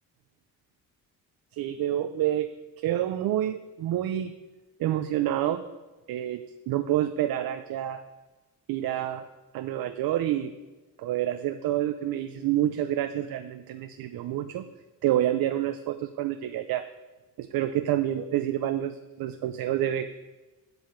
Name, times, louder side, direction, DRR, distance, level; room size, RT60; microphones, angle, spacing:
voice 1, 1.5-2.5 2.8-4.3 4.8-5.6 6.1-8.0 8.7-9.3 9.5-10.5 11.0-14.7 15.0-16.8 17.4-20.1, right 12 dB, 80° right, 9 dB, 0.6 m, -28 dB
8.6 x 8.1 x 6.9 m, 1.2 s
cardioid pair, 115°, 35 cm